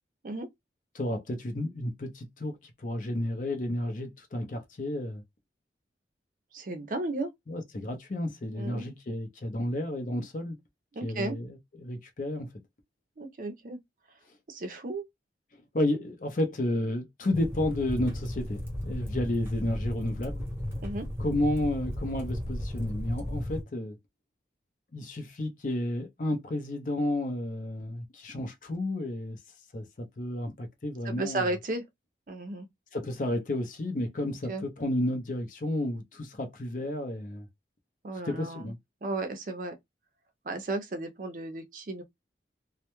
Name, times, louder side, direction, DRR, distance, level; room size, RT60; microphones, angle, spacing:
voice 1, 0.9-5.2 7.5-10.6 11.0-12.5 15.5-20.4 21.2-24.0 24.9-29.4 29.7-31.5 32.9-37.5 38.3-38.8, left 1 dB, 45° left, 0.5 m, -32 dB
voice 2, 6.5-7.3 8.6-8.9 10.9-11.4 13.2-13.8 14.5-15.0 20.8-21.1 31.0-31.8 32.3-32.7 34.5-34.6 38.0-38.7 39.0-39.8 40.4-42.0, right 2 dB, 45° right, 0.5 m, -34 dB
sound 1, 17.3-23.6, left 1 dB, 15° right, 0.8 m, -35 dB
2.2 x 2.0 x 2.9 m
head